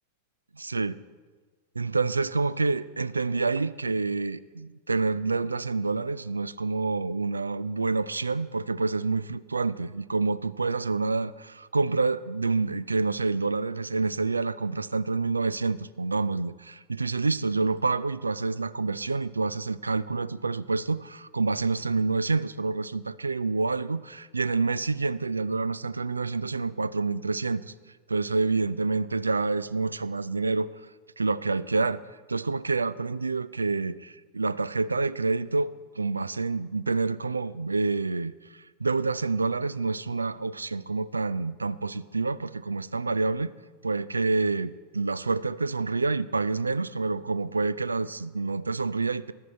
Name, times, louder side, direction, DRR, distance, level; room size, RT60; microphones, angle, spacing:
voice 1, 0.6-1.0 1.8-27.7 28.1-30.7 31.2-32.0 32.3-38.3 38.8-43.5 43.8-49.3, right 3 dB, 80° right, 19 dB, 0.3 m, -28 dB
14.0 x 11.5 x 4.3 m, 1.4 s
figure-of-eight pair, 90°, 0 cm